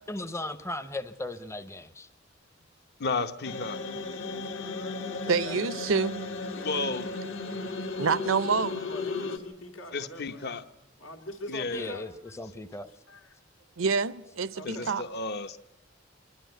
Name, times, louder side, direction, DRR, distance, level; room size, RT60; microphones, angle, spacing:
voice 1, 0.1-2.1 11.7-12.9, left 2 dB, 15° left, 0.6 m, -37 dB
voice 2, 3.0-3.8 6.6-7.1 9.9-10.6 11.5-11.9 14.6-15.6, left 3 dB, 55° left, 0.9 m, -32 dB
sound 1, 3.4-9.4, left 3 dB, 70° left, 1.8 m, -35 dB
voice 3, 4.5-5.7 5.9-6.1 8.9-10.6 11.0-12.1 13.1-13.4 14.5-15.1, equal, 90° left, 2.2 m, -44 dB
voice 4, 5.3-6.2 8.0-8.8 13.8-15.0, right 5 dB, 85° right, 0.7 m, -27 dB
26.5 x 11.5 x 9.2 m
head